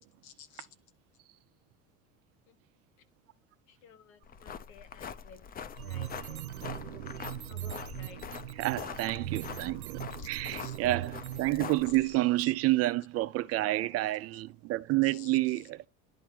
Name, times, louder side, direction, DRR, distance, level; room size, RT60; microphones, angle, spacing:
voice 1, 0.2-0.7 2.5-2.6 3.7-6.5 6.8-7.0 7.5-8.2 10.2-10.7 11.9-12.5 14.3-14.4 15.0-15.7, left 7 dB, 65° left, 1.8 m, -54 dB
sound 1, 4.2-12.2, left 7 dB, 20° left, 0.6 m, -44 dB
sound 2, 5.8-11.6, right 13 dB, 80° right, 0.6 m, -40 dB
voice 2, 8.6-10.0 10.3-15.9, right 18 dB, 35° right, 0.4 m, -29 dB
11.0 x 4.1 x 3.5 m
figure-of-eight pair, 75°, 43 cm